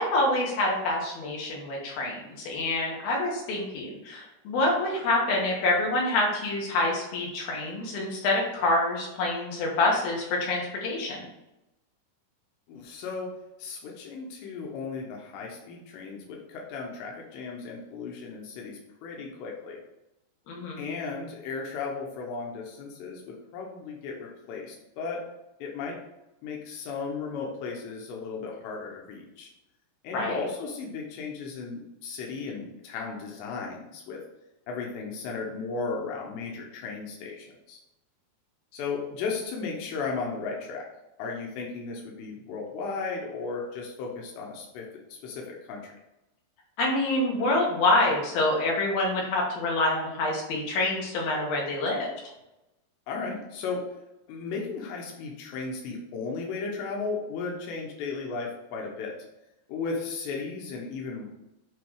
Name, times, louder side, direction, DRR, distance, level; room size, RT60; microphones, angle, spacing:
voice 1, 0.0-11.2 20.5-20.9 30.1-30.4 46.8-52.1, left 2 dB, 65° left, -2 dB, 3.2 m, -26 dB
voice 2, 12.7-13.3 13.6-19.8 20.8-25.2 25.6-26.0 26.4-29.5 30.0-34.2 34.7-37.8 38.7-40.9 41.2-45.9 53.1-53.9 54.3-59.1 59.7-61.3, left 4 dB, 85° left, -1 dB, 3.3 m, -35 dB
8.4 x 3.1 x 4.7 m, 0.93 s
omnidirectional pair, 4.9 m